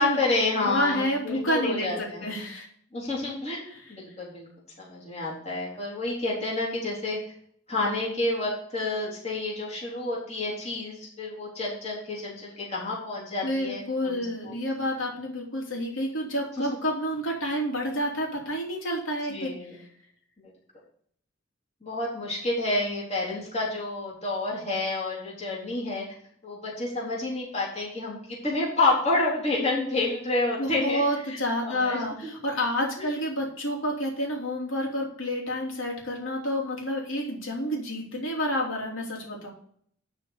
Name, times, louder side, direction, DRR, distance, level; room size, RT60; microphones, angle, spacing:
voice 1, 0.0-2.3 2.9-3.6 3.9-4.5 4.8-7.2 7.7-14.5 19.3-19.7 21.8-26.0 26.4-28.2 28.4-31.0 31.3-32.0 33.0-33.1, left 2 dB, 30° left, -5 dB, 3.7 m, -29 dB
voice 2, 0.5-2.7 3.7-3.8 13.4-19.5 30.6-39.5, equal, 75° left, -1 dB, 3.1 m, -29 dB
12.0 x 4.6 x 6.5 m, 0.62 s
head